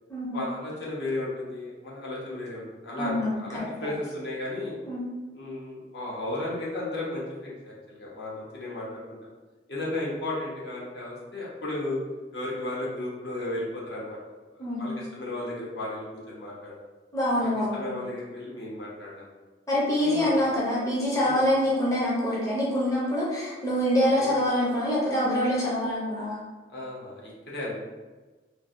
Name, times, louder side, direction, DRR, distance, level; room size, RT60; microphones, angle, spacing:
voice 1, 0.3-4.8 5.3-9.0 9.7-12.0 12.3-14.2 14.5-16.7 17.4-19.3 20.0-20.4 21.2-21.4 24.2-24.3 26.7-27.8, left 2 dB, 65° left, -5 dB, 0.8 m, -34 dB
voice 2, 3.0-3.4 4.9-5.0 14.6-15.0 17.1-17.9 19.7-26.4, left 1 dB, 20° left, -7 dB, 0.6 m, -25 dB
3.1 x 2.1 x 2.4 m, 1.3 s
head